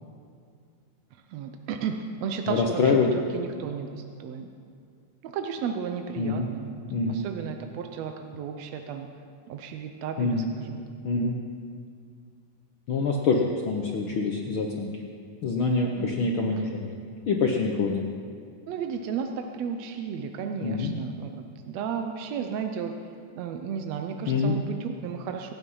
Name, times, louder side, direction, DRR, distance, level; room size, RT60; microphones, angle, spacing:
voice 1, 1.1-4.5 5.2-6.8 7.1-9.1 9.5-10.8 15.9-16.7 18.7-21.3 21.6-22.9 23.3-25.5, right 7 dB, 75° right, 5 dB, 1.7 m, -34 dB
voice 2, 2.5-3.1 6.2-6.5 6.9-7.2 10.2-10.5 11.0-11.4 12.9-14.9 15.4-16.9 17.3-18.1 20.6-20.9 24.3-24.6, left 4 dB, 70° left, 0 dB, 1.2 m, -25 dB
24.0 x 9.4 x 5.6 m, 2.3 s
omnidirectional pair, 3.7 m